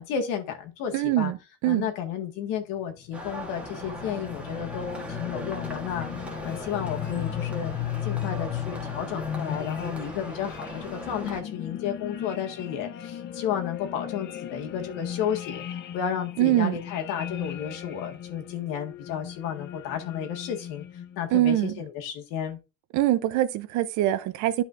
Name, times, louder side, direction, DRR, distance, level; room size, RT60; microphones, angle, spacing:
voice 1, 0.0-1.3 1.7-7.7 8.0-15.6 15.9-20.8 21.2-22.6, left 8 dB, 60° left, 1.8 m, -32 dB
voice 2, 0.9-1.4 1.6-1.9 16.4-16.8 21.3-21.8 22.9-24.6, right 14 dB, 50° right, 0.7 m, -23 dB
sound 1, 2.9-21.3, left 10 dB, 30° left, 0.6 m, -36 dB
sound 2, 3.1-11.4, right 1 dB, 5° right, 1.4 m, -39 dB
12.0 x 5.0 x 2.5 m
cardioid pair, 145°, 37 cm